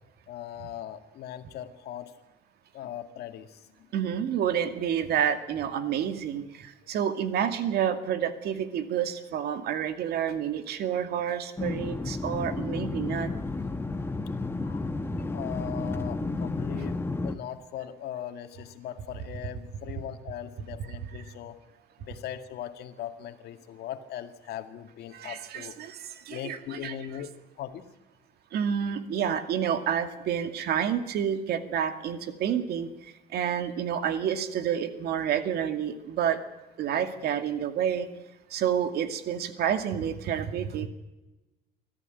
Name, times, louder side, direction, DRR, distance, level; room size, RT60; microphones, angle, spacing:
voice 1, 0.3-2.1 2.7-4.1 6.8-6.9 14.6-14.8 15.2-21.6 22.0-25.8 26.3-27.3 27.6-27.9, left 10 dB, 75° left, 8 dB, 2.1 m, -40 dB
voice 2, 3.9-13.3 25.1-27.0 28.5-32.9 33.3-36.4 36.8-38.1 38.5-40.9, right 9 dB, 70° right, 8 dB, 2.3 m, -29 dB
sound 1, 11.6-17.4, left 3 dB, 15° left, 1.3 m, -32 dB
24.5 x 14.5 x 9.3 m, 1.0 s
cardioid pair, 110°, 17 cm